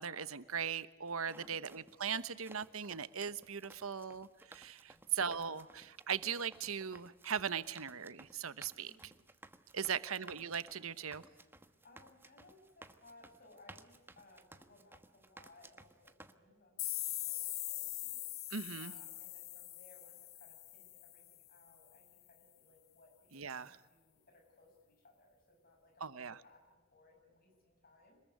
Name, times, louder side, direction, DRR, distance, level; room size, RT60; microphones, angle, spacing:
voice 1, 0.0-8.9 9.7-11.2 18.5-18.9 23.3-23.7 26.0-26.4, right 7 dB, 85° right, 14 dB, 1.1 m, -39 dB
sound 1, 1.1-16.3, right 2 dB, 10° right, 1.1 m, -58 dB
voice 2, 1.3-1.6 4.9-5.2 8.9-9.2 9.7-10.1 10.8-11.0 11.6-18.5 18.8-28.2, left 2 dB, 45° left, 3 dB, 7.3 m, -64 dB
sound 2, 16.8-21.5, left 15 dB, 80° left, 1.4 m, -42 dB
26.5 x 21.0 x 9.4 m, 1.2 s
head